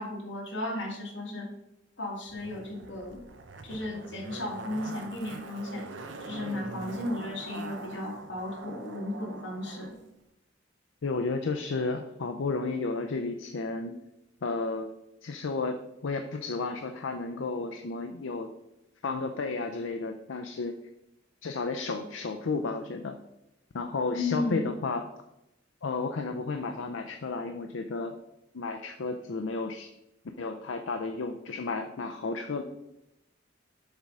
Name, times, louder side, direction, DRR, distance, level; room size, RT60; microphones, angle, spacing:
voice 1, 0.0-1.5 2.0-3.2 3.6-5.9 6.2-9.9 24.1-24.7, left 2 dB, 70° left, -1 dB, 1.9 m, -34 dB
Zipper (clothing), 2.3-9.9 10.2-10.3, right 3 dB, 75° right, 0.7 m, -43 dB
voice 2, 11.0-13.9 14.4-14.9 15.2-18.5 19.0-20.7 21.4-23.2 23.7-25.1 25.8-28.2 28.5-29.9 30.4-32.6, left 3 dB, 85° left, 6 dB, 0.5 m, -32 dB
7.2 x 3.7 x 5.3 m, 0.87 s
head